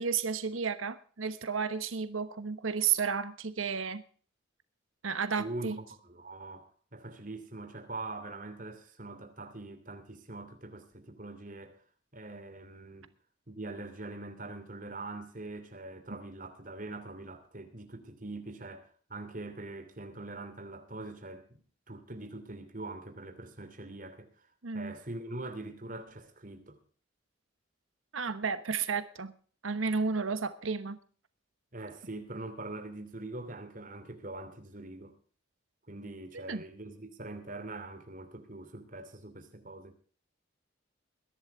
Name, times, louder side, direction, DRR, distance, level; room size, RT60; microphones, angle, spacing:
voice 1, 0.0-4.0 5.0-5.8 24.6-24.9 28.1-29.3 29.6-31.0 36.5-36.6, right 5 dB, 85° right, 1.1 m, -32 dB
voice 2, 5.4-11.8 12.1-13.1 13.5-21.6 21.9-24.5 24.7-26.8 31.7-35.1 35.9-39.9, right 2 dB, 40° right, 2.9 m, -43 dB
21.5 x 11.0 x 3.5 m
head